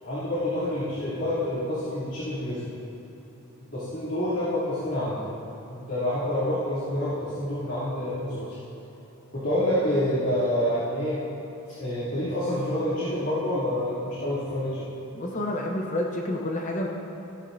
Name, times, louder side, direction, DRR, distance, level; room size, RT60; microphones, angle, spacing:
voice 1, 0.0-2.6 3.7-5.2 5.7-8.6 9.3-11.2 11.8-14.9, left 1 dB, 55° left, -12 dB, 3.0 m, -27 dB
voice 2, 15.1-16.9, left 1 dB, 35° left, 0 dB, 0.9 m, -29 dB
16.5 x 12.5 x 2.7 m, 2.9 s
head